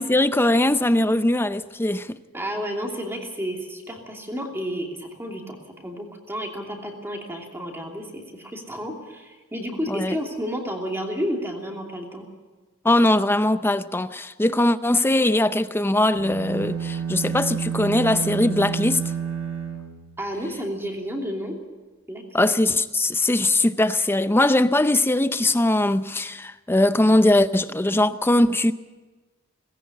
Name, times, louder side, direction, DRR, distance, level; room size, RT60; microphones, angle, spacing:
voice 1, 0.0-2.2 9.9-10.1 12.8-19.0 22.3-28.7, left 1 dB, 10° left, 0.6 m, -20 dB
voice 2, 2.3-12.2 20.2-21.6 22.1-22.5, equal, 10° right, 2.8 m, -31 dB
sound 1, 16.1-20.5, right 7 dB, 75° right, 5.2 m, -30 dB
18.5 x 16.5 x 8.5 m
head